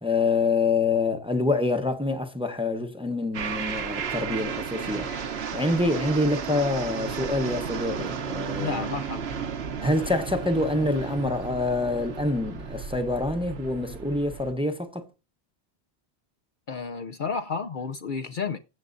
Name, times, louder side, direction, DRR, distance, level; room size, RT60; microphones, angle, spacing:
voice 1, 0.0-5.1 5.5-8.9 9.8-15.1, left 2 dB, 5° right, 0.8 m, -26 dB
sound 1, 3.3-14.5, right 6 dB, 70° right, 1.1 m, -33 dB
voice 2, 8.6-9.3 16.7-18.6, left 5 dB, 55° left, 0.7 m, -31 dB
22.0 x 7.4 x 2.6 m
omnidirectional pair, 1.1 m